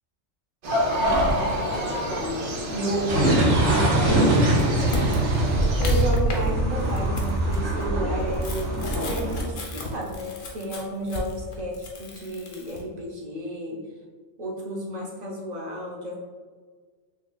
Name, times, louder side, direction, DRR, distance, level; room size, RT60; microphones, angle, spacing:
sound 1, 0.6-6.1, equal, 65° right, 1.0 m, -28 dB
voice 1, 0.9-2.4 2.7-13.8 14.4-16.1, equal, 40° right, -3 dB, 0.7 m, -32 dB
sound 2, 3.1-9.4, right 1 dB, 85° right, 2.0 m, -22 dB
sound 3, 4.5-6.5 6.8-12.8, left 2 dB, 75° left, 1.0 m, -35 dB
6.3 x 2.4 x 2.2 m, 1.5 s
omnidirectional pair, 1.3 m